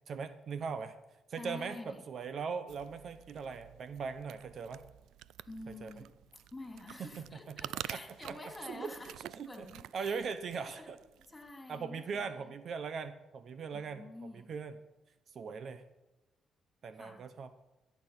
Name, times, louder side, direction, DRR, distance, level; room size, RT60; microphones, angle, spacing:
voice 1, 0.1-1.0 1.3-4.8 5.7-5.9 7.0-7.6 7.9-8.0 8.3-8.4 8.7-9.5 9.9-11.0 11.7-14.8 15.3-15.8 16.8-17.5, right 5 dB, 55° right, 11 dB, 0.8 m, -40 dB
voice 2, 1.4-2.0 5.5-6.1 6.5-9.1 9.5-10.2 10.6-10.9 11.3-12.5 13.7-14.5 17.0-17.2, left 2 dB, 15° left, 3 dB, 3.0 m, -48 dB
sound 1, 2.7-11.5, right 12 dB, 85° right, 0.3 m, -49 dB
14.0 x 8.6 x 5.8 m, 1.0 s
cardioid pair, 90°, 0 cm